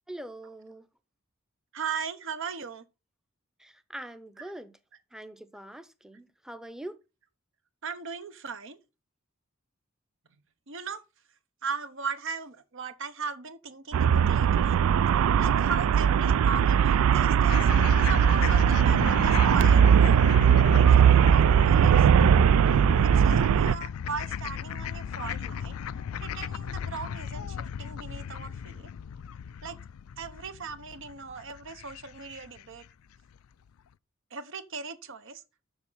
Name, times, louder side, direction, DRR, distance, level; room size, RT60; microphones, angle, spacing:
voice 1, 0.1-0.8 3.6-4.7 5.1-7.0, right 1 dB, 5° right, 0.7 m, -43 dB
voice 2, 1.7-2.8 4.4-4.5 7.8-8.8 10.7-11.0 11.6-14.8 15.4-17.7 18.0-22.1 23.0-25.8 26.2-28.9 29.6-29.8 30.2-32.8 34.3-35.4, right 5 dB, 65° right, 0.9 m, -38 dB
Traffic noise roadway noise, 13.9-23.8, right 8 dB, 90° right, 0.3 m, -20 dB
sound 1, 17.5-32.8, left 7 dB, 90° left, 0.4 m, -36 dB
7.2 x 6.1 x 5.6 m
head